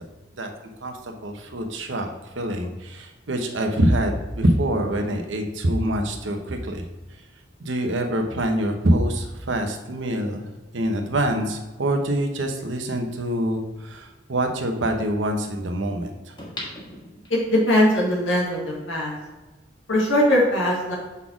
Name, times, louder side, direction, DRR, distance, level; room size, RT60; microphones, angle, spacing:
voice 1, 0.8-2.1 2.4-6.8 7.6-10.5 10.7-16.3, right 1 dB, 70° right, 4 dB, 0.9 m, -25 dB
sound 1, 16.4-17.7 18.2-18.3, left 1 dB, 25° left, 1.5 m, -38 dB
voice 2, 17.3-19.2 19.9-21.0, left 1 dB, 85° left, -3 dB, 1.7 m, -20 dB
5.5 x 4.2 x 6.0 m, 1.2 s
head